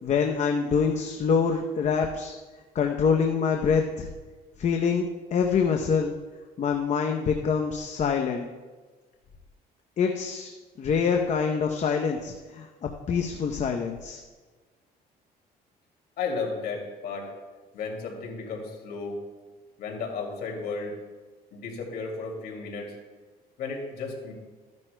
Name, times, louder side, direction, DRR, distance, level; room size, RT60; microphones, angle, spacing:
voice 1, 0.0-2.3 2.7-4.1 4.6-6.1 6.6-8.5 10.0-10.5 10.8-14.2, left 6 dB, 45° left, 3 dB, 0.8 m, -25 dB
voice 2, 16.2-17.3 17.7-19.2 19.8-20.9 21.5-22.9 23.6-24.3, left 4 dB, 70° left, 0 dB, 2.5 m, -33 dB
14.5 x 10.5 x 2.2 m, 1.3 s
cardioid pair, 110°, 17 cm